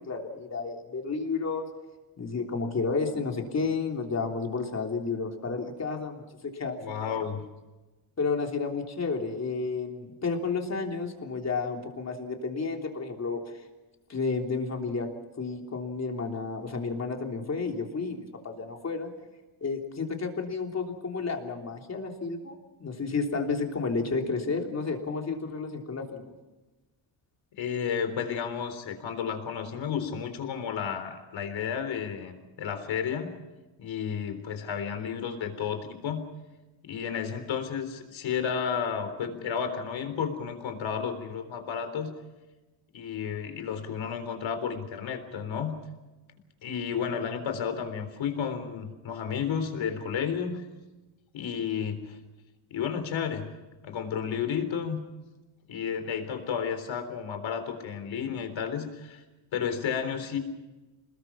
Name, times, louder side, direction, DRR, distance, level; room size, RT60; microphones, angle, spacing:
voice 1, 0.0-1.7 2.2-7.2 8.2-13.6 14.1-15.1 15.4-19.1 19.6-26.3, left 4 dB, 30° left, 2 dB, 3.4 m, -31 dB
voice 2, 6.8-7.4 27.6-33.3 33.8-36.2 36.8-42.1 42.9-45.8 46.6-50.7 51.3-52.2 52.7-53.5 53.8-55.0 55.7-59.2 59.5-60.4, left 7 dB, 65° left, 8 dB, 3.9 m, -32 dB
28.0 x 20.5 x 5.9 m, 1.1 s
cardioid pair, 150°, 49 cm